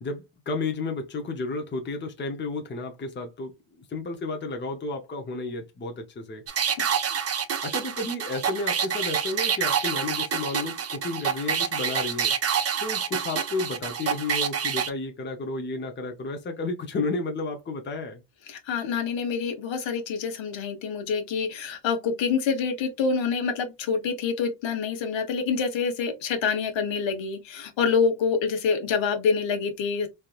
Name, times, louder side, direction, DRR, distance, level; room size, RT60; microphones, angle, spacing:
voice 1, 0.0-3.5 3.8-6.4 7.6-12.3 12.8-18.2, left 3 dB, 25° left, 0.8 m, -32 dB
sound 1, 6.5-14.9, right 7 dB, 35° right, 0.5 m, -27 dB
voice 2, 18.5-30.1, left 5 dB, 75° left, 1.2 m, -26 dB
3.4 x 2.8 x 2.4 m
cardioid pair, 150°, 46 cm